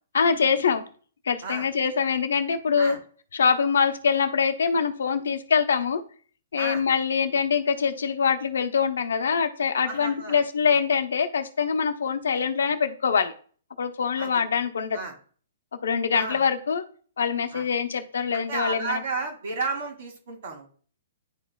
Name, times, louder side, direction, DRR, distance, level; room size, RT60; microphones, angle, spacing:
voice 1, 0.1-0.8 1.3-3.0 3.3-6.0 6.5-13.3 13.8-15.0 15.8-16.8 17.2-19.0, left 6 dB, 75° left, 8 dB, 0.7 m, -24 dB
voice 2, 9.9-10.4 14.2-14.3 14.9-15.1 16.1-16.4 17.5-17.6 18.3-20.7, right 4 dB, 60° right, 3 dB, 2.2 m, -32 dB
10.5 x 4.1 x 2.3 m, 0.43 s
hypercardioid pair, 135°, 0 cm